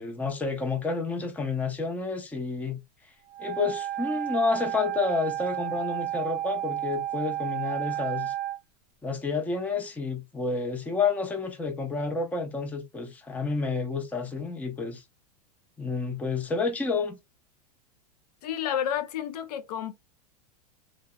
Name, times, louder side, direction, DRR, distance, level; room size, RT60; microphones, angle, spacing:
voice 1, 0.0-2.8 3.4-8.3 9.0-15.0 15.8-17.2, left 4 dB, 10° left, 0.5 m, -30 dB
Wind instrument woodwind instrument, 3.3-8.6, right 13 dB, 40° right, 0.4 m, -32 dB
voice 2, 18.4-19.9, left 9 dB, 75° left, 0.5 m, -30 dB
2.7 x 2.0 x 2.3 m
hypercardioid pair, 115°, 20 cm